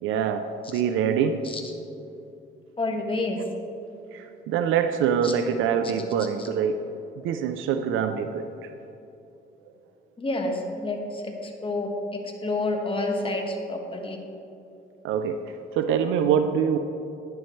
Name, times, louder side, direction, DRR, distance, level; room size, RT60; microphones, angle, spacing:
voice 1, 0.0-1.5 4.1-6.8 7.2-8.7 15.0-16.8, right 7 dB, 90° right, 8 dB, 0.4 m, -25 dB
voice 2, 2.8-3.4 5.2-5.3 6.4-6.5 10.2-11.9 12.4-14.2, left 2 dB, 25° left, 2 dB, 1.4 m, -29 dB
10.5 x 10.0 x 3.2 m, 2.8 s
cardioid pair, 90°, 20 cm